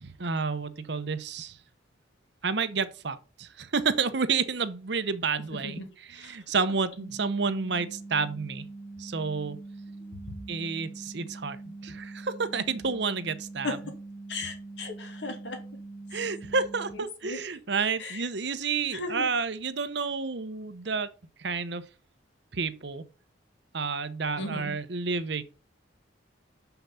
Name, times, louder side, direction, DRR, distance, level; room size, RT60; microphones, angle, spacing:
voice 1, 0.0-1.6 2.4-5.8 6.1-8.6 9.0-9.6 10.5-13.8 16.1-21.1 21.4-21.8 22.5-23.0 23.7-25.4, right 5 dB, 60° right, 0.8 m, -30 dB
sound 1, 7.0-17.0, right 2 dB, 40° left, 4.2 m, -43 dB
voice 2, 14.3-15.6 16.9-17.4 18.0-18.3 18.9-19.3 24.4-24.7, left 3 dB, 65° left, 2.6 m, -36 dB
6.8 x 5.8 x 5.7 m
head